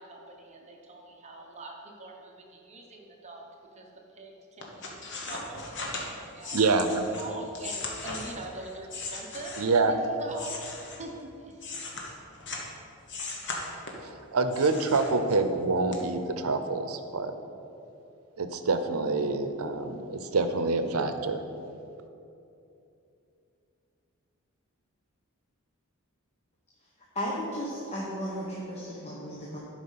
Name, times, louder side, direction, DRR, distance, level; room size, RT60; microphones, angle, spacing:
voice 1, 0.0-3.5 3.7-5.0 5.3-6.6 7.2-11.7, right 2 dB, 30° right, 1 dB, 1.0 m, -43 dB
sound 1, 4.6-9.9 10.3-12.7 13.1-14.1 14.5-15.6 15.9-16.0, left 3 dB, 60° left, 1.3 m, -38 dB
voice 2, 6.5-7.1 9.6-9.9 14.0-17.3 18.4-21.4, right 3 dB, 85° right, 8 dB, 0.7 m, -26 dB
voice 3, 27.1-29.6, equal, 30° left, -5 dB, 1.1 m, -34 dB
11.5 x 4.9 x 5.6 m, 2.8 s
head